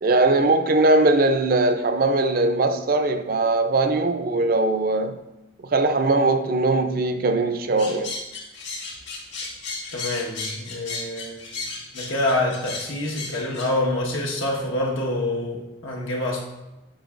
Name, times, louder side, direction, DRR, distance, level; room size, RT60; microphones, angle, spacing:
voice 1, 0.0-5.2 5.7-8.2, right 2 dB, 45° right, 0.4 m, -20 dB
sound 1, 7.8-13.7, left 4 dB, 65° left, 1.8 m, -34 dB
voice 2, 9.9-11.4 11.9-16.4, left 1 dB, 90° left, 1.3 m, -26 dB
8.9 x 5.4 x 2.5 m
head